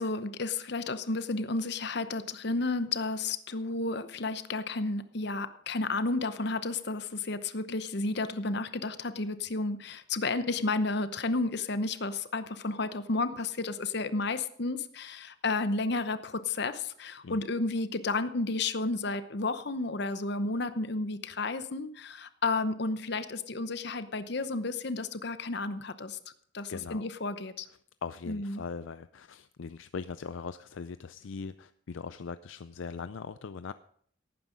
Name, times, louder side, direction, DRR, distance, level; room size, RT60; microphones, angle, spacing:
voice 1, 0.0-26.2 26.5-27.7 28.3-28.6, left 3 dB, 55° left, 0.9 m, -32 dB
voice 2, 26.7-27.1 28.0-33.7, left 5 dB, 70° left, 0.4 m, -40 dB
17.0 x 9.5 x 5.2 m
head